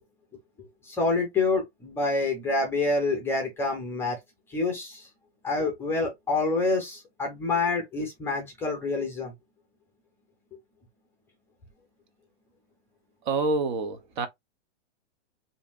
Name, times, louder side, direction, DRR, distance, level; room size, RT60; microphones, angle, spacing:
voice 1, 0.9-4.2 4.5-5.1 5.4-9.3, left 3 dB, 5° left, 0.6 m, -27 dB
voice 2, 13.3-14.3, right 3 dB, 45° right, 0.7 m, -27 dB
5.4 x 2.7 x 2.4 m
supercardioid pair, 170°, 34 cm